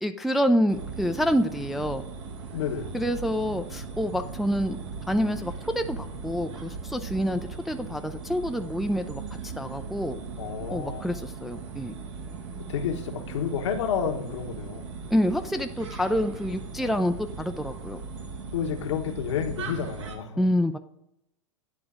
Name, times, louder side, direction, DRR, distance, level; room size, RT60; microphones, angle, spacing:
voice 1, 0.0-2.0 2.9-4.8 5.1-10.2 10.7-11.9 15.1-18.0 20.4-20.8, equal, ahead, 6 dB, 0.3 m, -27 dB
sound 1, 0.7-20.2, right 5 dB, 65° right, 1.3 m, -38 dB
voice 2, 2.5-3.0 10.4-11.0 12.6-14.9 16.8-16.9 18.5-20.5, left 7 dB, 65° left, 4 dB, 1.1 m, -30 dB
9.7 x 3.8 x 3.6 m, 0.82 s
hypercardioid pair, 100°, 16 cm